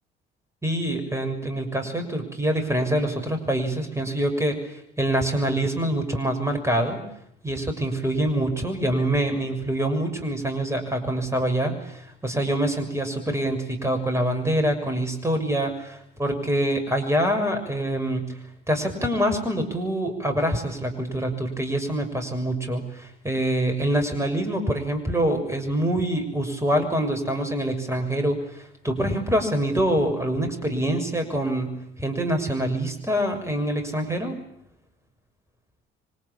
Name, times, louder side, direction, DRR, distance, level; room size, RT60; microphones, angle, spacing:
voice 1, 0.6-4.6 5.0-7.0 7.4-18.2 18.7-31.7 32.0-34.3, right 1 dB, 10° right, 6 dB, 6.6 m, -25 dB
26.0 x 25.0 x 8.7 m, 0.73 s
figure-of-eight pair, 50°, 29 cm